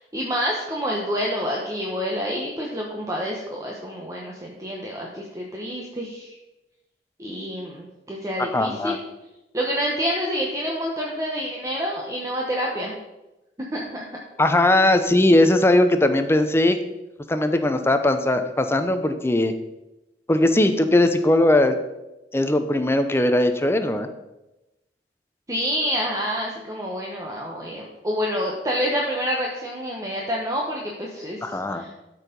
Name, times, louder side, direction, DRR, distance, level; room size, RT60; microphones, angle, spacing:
voice 1, 0.0-6.3 7.2-9.0 9.5-13.0 13.7-14.1 14.7-14.8 25.5-31.9, equal, 20° right, -2 dB, 1.1 m, -28 dB
voice 2, 8.5-9.0 14.4-16.8 17.3-19.5 20.3-21.7 22.3-24.1 31.4-31.8, left 1 dB, 15° left, 8 dB, 0.6 m, -19 dB
12.0 x 4.7 x 5.2 m, 0.98 s
head